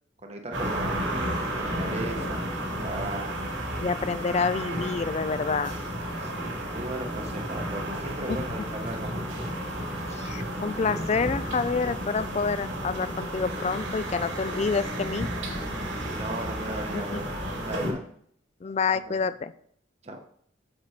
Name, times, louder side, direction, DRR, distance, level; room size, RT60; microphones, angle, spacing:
voice 1, 0.2-3.3 6.2-9.2 16.1-18.0 18.9-19.2 20.0-20.2, right 2 dB, 35° right, 3 dB, 1.0 m, -37 dB
sound 1, 0.5-17.9, right 1 dB, 80° right, 2.4 m, -32 dB
voice 2, 3.8-5.7 8.3-8.4 10.1-15.3 16.9-17.2 18.6-19.5, left 5 dB, 35° left, 14 dB, 0.3 m, -28 dB
7.8 x 6.9 x 4.2 m, 0.65 s
head